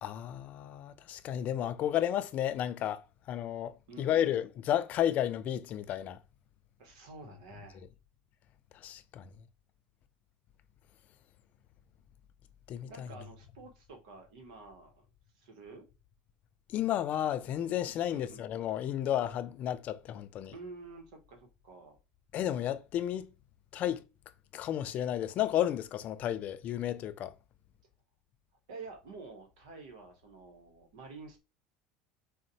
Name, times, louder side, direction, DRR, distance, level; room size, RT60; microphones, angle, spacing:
voice 1, 0.0-3.7 4.0-6.2 8.7-9.3 12.7-13.1 16.7-20.5 22.3-23.3 23.7-24.0 24.5-27.3, left 11 dB, 45° left, 0.3 m, -32 dB
voice 2, 3.9-4.4 6.8-7.8 12.9-15.1 15.3-15.9 18.1-18.4 20.5-22.0 28.7-31.4, right 3 dB, 90° right, 0.8 m, -49 dB
3.9 x 2.1 x 2.6 m
supercardioid pair, 115°, 3 cm